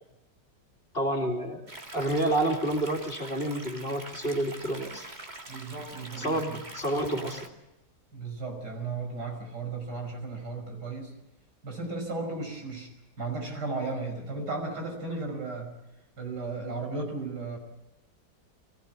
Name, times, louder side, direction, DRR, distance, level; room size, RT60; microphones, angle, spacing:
voice 1, 0.9-5.1 6.2-7.5, right 1 dB, 30° left, 1 dB, 3.0 m, -29 dB
sound 1, 1.7-7.5, right 2 dB, 25° right, 2.0 m, -44 dB
voice 2, 5.5-6.6 8.1-11.1 11.6-12.9 13.2-15.7 16.2-17.6, right 3 dB, 70° right, 2 dB, 6.5 m, -35 dB
24.0 x 16.5 x 9.7 m, 0.97 s
omnidirectional pair, 1.9 m